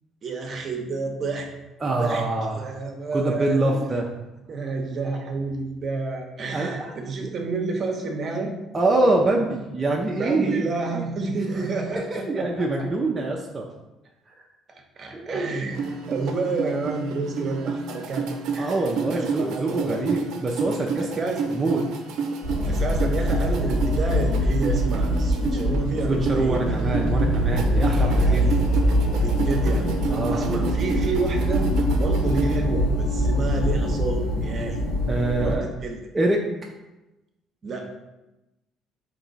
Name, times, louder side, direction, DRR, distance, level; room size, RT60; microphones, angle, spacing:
voice 1, 0.2-1.5 1.9-2.2 2.5-3.8 4.5-8.5 10.2-12.9 14.7-15.8 16.1-18.3 18.5-18.8 19.1-20.0 21.0-21.6 22.6-26.7 27.0-27.1 27.9-28.7 29.1-29.9 30.3-31.7 32.0-34.8 35.4-35.6 35.8-36.0 37.6-37.9, right 3 dB, 45° right, 3 dB, 0.9 m, -29 dB
voice 2, 1.8-2.7 3.1-4.1 6.5-7.3 8.7-10.7 11.5-11.8 12.1-13.7 14.3-14.5 15.1-15.4 18.6-21.1 21.5-21.8 26.1-28.5 30.1-30.5 35.1-35.7 36.1-36.4, right 2 dB, 25° right, -1 dB, 0.6 m, -25 dB
sound 1, 15.7-32.6, right 4 dB, 75° right, 0.6 m, -30 dB
sound 2, 22.4-35.5, equal, 85° left, 1.5 m, -23 dB
4.3 x 2.9 x 4.1 m, 0.99 s
supercardioid pair, 85°, 0 cm